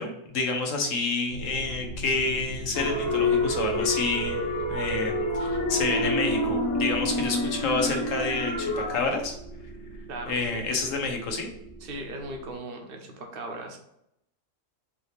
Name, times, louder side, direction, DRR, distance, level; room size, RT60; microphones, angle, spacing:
voice 1, 0.0-4.4 4.7-9.4 10.3-11.5, left 3 dB, 70° left, 3 dB, 1.2 m, -29 dB
sound 1, 1.3-12.6, right 1 dB, 50° left, 1.4 m, -40 dB
sound 2, 2.7-9.0, left 1 dB, 85° left, 1.4 m, -27 dB
voice 2, 10.1-10.7 11.8-13.8, right 2 dB, 50° right, 3 dB, 0.9 m, -38 dB
4.7 x 2.8 x 3.3 m, 0.78 s
omnidirectional pair, 1.4 m